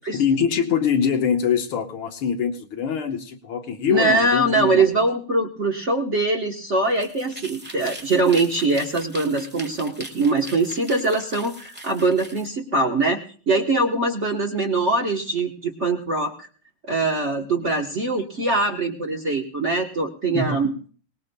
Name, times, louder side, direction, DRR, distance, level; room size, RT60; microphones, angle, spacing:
voice 1, 0.1-4.9 20.3-20.7, left 7 dB, 70° left, 4 dB, 1.9 m, -23 dB
voice 2, 3.9-13.2 13.5-16.5 16.8-20.7, right 2 dB, 45° right, 1 dB, 1.0 m, -22 dB
sound 1, 6.8-12.5, right 1 dB, 5° right, 0.9 m, -40 dB
23.5 x 19.0 x 2.2 m, 0.43 s
omnidirectional pair, 2.4 m